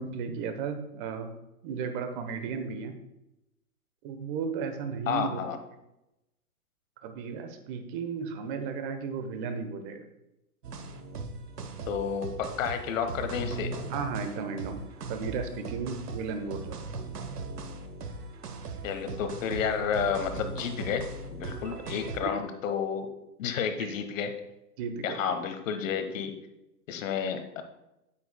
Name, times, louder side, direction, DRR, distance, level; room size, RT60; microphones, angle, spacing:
voice 1, 0.0-1.3 1.6-2.9 4.0-5.4 7.0-10.1 13.9-14.8 15.1-16.8 22.2-22.3 23.8-23.9 24.8-25.2, right 5 dB, 35° right, 7 dB, 1.0 m, -34 dB
voice 2, 5.1-5.6 11.9-13.7 18.8-21.0 21.3-23.1 23.4-24.3 25.0-26.3 26.9-27.6, left 7 dB, 55° left, 8 dB, 1.2 m, -31 dB
sound 1, 10.6-22.2, right 3 dB, 85° right, 1.1 m, -39 dB
8.9 x 8.7 x 2.2 m, 0.91 s
hypercardioid pair, 130°, 46 cm